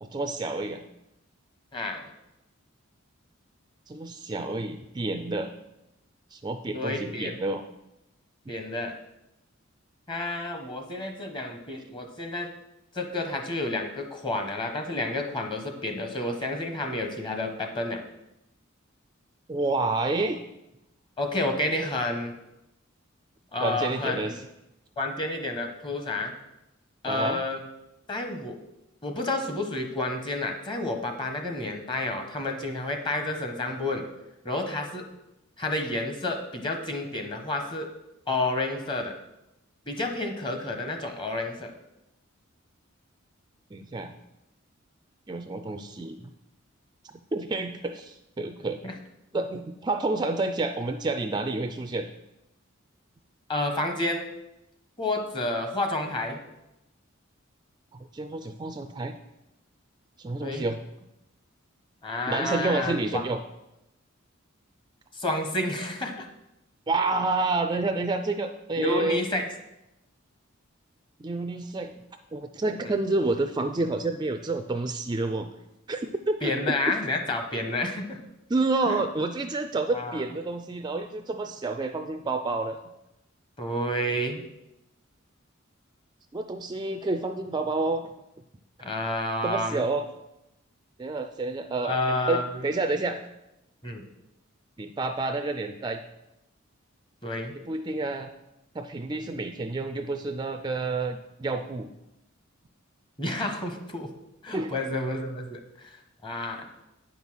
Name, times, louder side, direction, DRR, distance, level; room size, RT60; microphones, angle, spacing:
voice 1, 0.0-0.9 3.9-5.5 6.3-7.6 19.5-20.4 23.6-24.3 27.0-27.4 43.7-44.1 45.3-46.2 47.3-48.8 49.3-52.1 58.1-59.2 60.2-60.8 62.3-63.4 66.9-69.2 71.2-72.0 72.3-75.5 75.9-76.9 78.5-82.8 86.3-88.1 89.4-90.0 91.0-92.0 92.3-93.3 94.8-96.0 97.7-98.3 98.7-101.9 104.5-104.7, right 2 dB, 20° right, 7 dB, 0.4 m, -29 dB
voice 2, 1.7-2.1 6.7-7.4 8.5-8.9 10.1-12.5 12.9-18.0 21.2-22.3 23.5-24.3 25.0-26.3 27.0-27.6 28.1-28.6 29.0-34.1 34.4-35.1 35.6-37.9 38.3-39.2 39.9-41.7 48.8-48.9 53.5-54.3 55.0-56.4 60.4-60.7 62.0-63.2 65.1-66.3 68.8-69.5 72.8-72.9 76.4-78.2 78.9-79.0 79.9-80.2 83.6-84.4 88.8-89.8 91.8-92.6 93.8-94.0 97.2-97.5 103.2-104.1 104.4-106.7, left 2 dB, 25° left, 5 dB, 1.1 m, -30 dB
9.0 x 5.5 x 6.2 m, 0.90 s
head